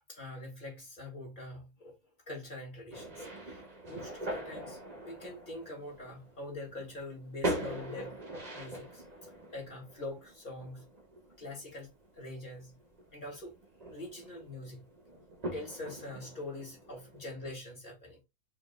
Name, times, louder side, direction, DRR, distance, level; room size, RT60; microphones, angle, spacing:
voice 1, 0.1-1.9 2.3-8.2 8.5-9.0 9.5-10.9 11.4-11.9 12.2-12.8 13.1-13.5 13.9-14.9 15.5-18.2, left 2 dB, 30° left, 1.6 m, -44 dB
sound 1, 2.9-17.5, right 1 dB, 30° right, 1.0 m, -42 dB
3.5 x 2.8 x 3.9 m
omnidirectional pair, 1.7 m